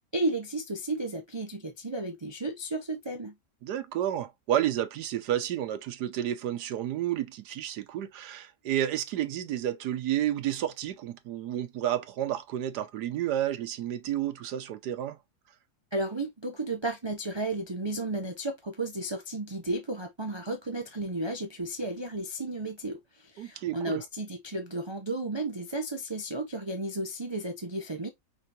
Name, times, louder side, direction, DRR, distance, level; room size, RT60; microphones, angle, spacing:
voice 1, 0.1-3.3 15.9-28.1, right 2 dB, 30° right, 0.5 m, -33 dB
voice 2, 3.6-15.2 23.4-24.0, right 11 dB, 90° right, 1.3 m, -31 dB
5.6 x 3.3 x 2.7 m
omnidirectional pair, 1.7 m